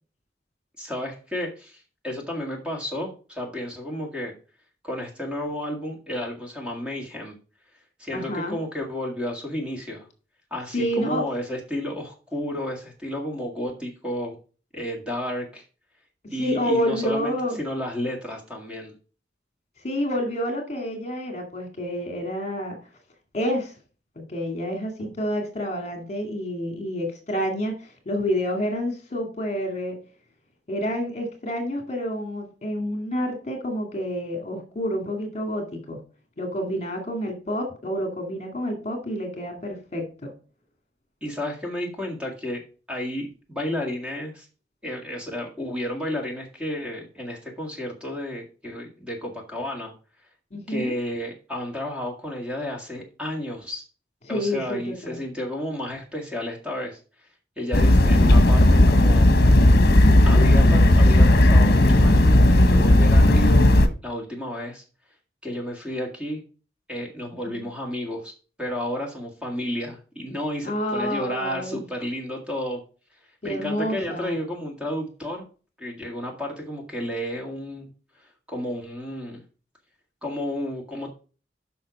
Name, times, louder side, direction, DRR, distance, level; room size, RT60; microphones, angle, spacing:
voice 1, 0.8-4.3 4.8-7.3 8.0-10.1 10.5-14.4 14.7-15.6 16.3-18.9 41.2-42.6 42.9-44.5 44.8-49.9 50.7-53.8 54.3-57.0 57.6-59.3 60.3-64.8 65.4-66.4 66.9-72.8 73.4-75.4 75.8-77.9 78.2-79.4 80.2-81.1, left 1 dB, 5° right, 0 dB, 2.0 m, -32 dB
voice 2, 8.1-8.6 10.7-11.3 16.4-17.6 19.8-22.8 23.3-23.7 24.2-30.0 30.7-36.0 36.4-40.3 50.5-50.9 54.2-55.2 67.5-67.6 70.6-71.8 73.4-74.4, equal, 40° left, 4 dB, 2.2 m, -28 dB
sound 1, 57.7-63.9, left 1 dB, 60° left, 1.0 m, -15 dB
7.6 x 5.8 x 5.2 m, 0.37 s
head